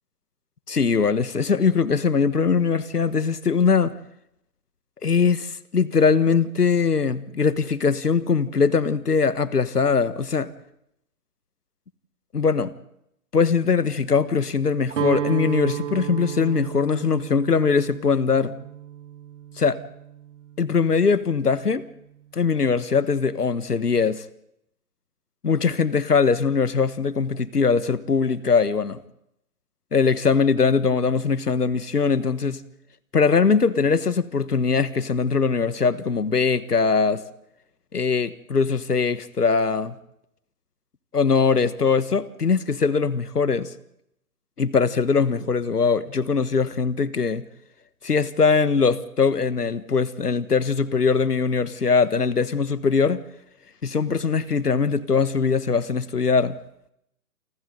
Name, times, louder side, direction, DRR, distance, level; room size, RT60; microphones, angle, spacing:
voice 1, 0.7-3.9 5.0-10.5 12.3-12.7 13.3-18.5 19.6-19.8 20.6-21.8 22.3-24.2 25.4-29.0 29.9-32.6 33.1-37.2 37.9-40.0 41.1-43.7 44.6-47.4 48.0-53.2 53.8-56.6, left 5 dB, 90° left, 15 dB, 1.5 m, -21 dB
Guitar, 14.9-20.9, right 10 dB, 50° right, 1.6 m, -33 dB
28.5 x 26.0 x 3.9 m, 0.77 s
figure-of-eight pair, 140°, 46 cm